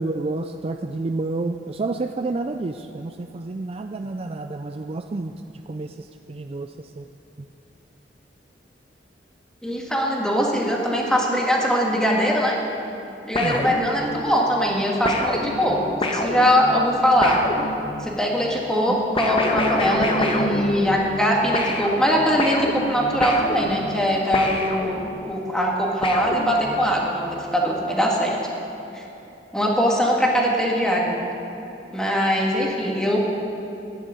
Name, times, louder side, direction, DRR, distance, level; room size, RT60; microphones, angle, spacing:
voice 1, 0.0-5.3 5.7-7.1 13.4-13.8 18.8-19.0, right 3 dB, 35° right, 6 dB, 0.4 m, -29 dB
voice 2, 9.6-12.6 13.2-17.4 18.0-25.0 25.2-28.4 28.9-29.0 29.5-31.2 31.9-33.2, equal, 5° left, -2 dB, 2.0 m, -21 dB
sound 1, 13.3-14.3 15.0-18.2 19.2-21.3 21.5-25.3 26.0-27.0, left 1 dB, 35° left, 1.2 m, -27 dB
13.0 x 10.0 x 8.3 m, 2.9 s
head